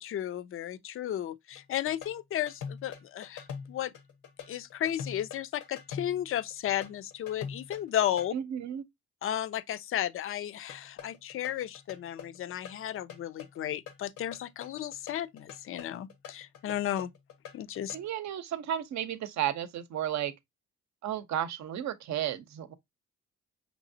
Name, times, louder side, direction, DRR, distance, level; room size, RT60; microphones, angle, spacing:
voice 1, 0.0-3.9 4.5-8.3 9.2-17.1 17.5-18.0, left 11 dB, 45° left, 0.4 m, -34 dB
sound 1, 1.6-8.3 10.7-18.1, left 7 dB, 80° left, 1.0 m, -44 dB
voice 2, 8.3-8.8 17.9-20.3 21.0-22.7, right 10 dB, 65° right, 0.7 m, -33 dB
5.6 x 3.0 x 2.7 m
cardioid pair, 90°, 30 cm